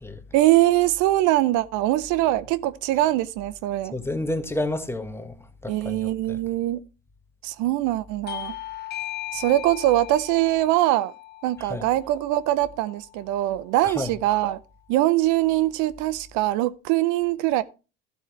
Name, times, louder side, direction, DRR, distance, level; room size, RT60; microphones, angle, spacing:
voice 1, 0.3-3.9 5.7-6.8 7.4-8.6 9.3-11.1 11.4-14.6 14.9-17.6, right 15 dB, 65° right, 0.6 m, -22 dB
voice 2, 3.9-5.3 5.6-6.4 11.7-11.8 13.8-14.1, left 1 dB, 10° left, 1.4 m, -30 dB
Bell / Doorbell, 8.3-13.3, left 14 dB, 30° left, 0.5 m, -38 dB
13.0 x 7.7 x 3.1 m
supercardioid pair, 85°, 32 cm